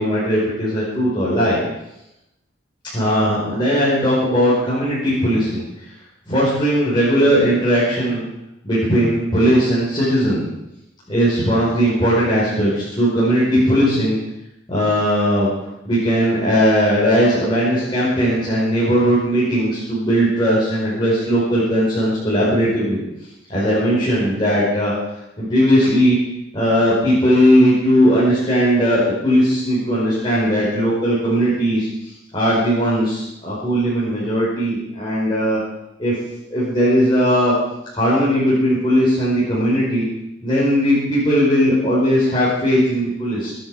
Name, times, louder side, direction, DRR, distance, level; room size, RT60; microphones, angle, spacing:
voice 1, 0.0-1.6 2.9-5.6 6.3-8.2 8.6-10.5 11.1-14.2 14.7-15.5 15.8-23.0 23.5-24.9 25.4-26.2 26.5-35.6 36.0-36.1 36.5-37.5 37.9-40.0 40.4-43.5, equal, 25° left, -9 dB, 5.1 m, -18 dB
23.0 x 10.0 x 5.0 m, 0.86 s
head